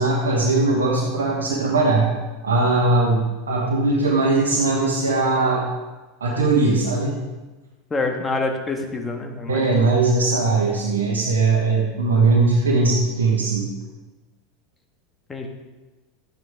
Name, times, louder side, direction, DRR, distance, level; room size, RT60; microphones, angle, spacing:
voice 1, 0.0-2.1 2.4-5.7 6.2-7.2 9.5-13.7, right 3 dB, 80° right, -4 dB, 1.5 m, -20 dB
voice 2, 7.9-9.8 15.3-15.5, left 3 dB, 20° left, 4 dB, 1.7 m, -26 dB
12.0 x 9.3 x 3.6 m, 1.2 s
hypercardioid pair, 85°, 0 cm